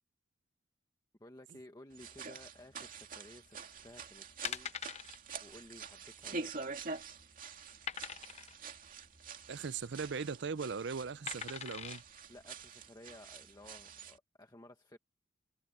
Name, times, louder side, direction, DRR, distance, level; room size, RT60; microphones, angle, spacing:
voice 1, 1.2-4.7 5.4-6.5 12.3-15.0, left 1 dB, 20° left, 1.3 m, -55 dB
sound 1, 1.9-14.2, right 4 dB, 45° right, 2.4 m, -47 dB
sound 2, 3.8-4.0 4.4-5.2 5.5-5.7 5.9-6.0 6.6-7.1 7.9-8.6 9.9-10.3 11.3-12.0 12.6-12.7, left 7 dB, 35° left, 0.8 m, -42 dB
voice 2, 9.5-12.0, right 5 dB, 65° right, 0.6 m, -39 dB
open air
head